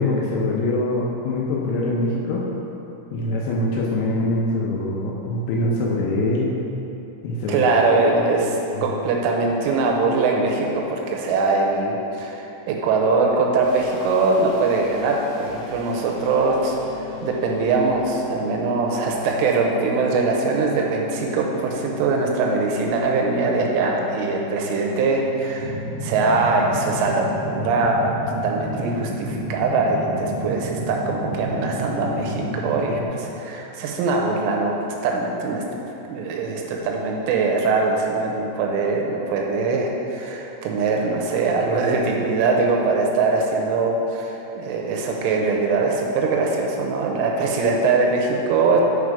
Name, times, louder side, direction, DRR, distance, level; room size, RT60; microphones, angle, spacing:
voice 1, 0.0-2.4 3.1-6.5 7.2-7.6 8.7-8.8, left 2 dB, 80° left, -3 dB, 2.7 m, -23 dB
voice 2, 7.5-28.2 28.4-34.7 35.0-35.6 36.1-48.8, right 3 dB, 90° right, 0 dB, 3.3 m, -22 dB
sound 1, 13.6-27.9, left 1 dB, 60° left, 2.8 m, -39 dB
sound 2, 25.6-33.0, right 1 dB, 60° right, 1.8 m, -30 dB
9.8 x 4.6 x 4.9 m, 3.0 s
omnidirectional pair, 5.6 m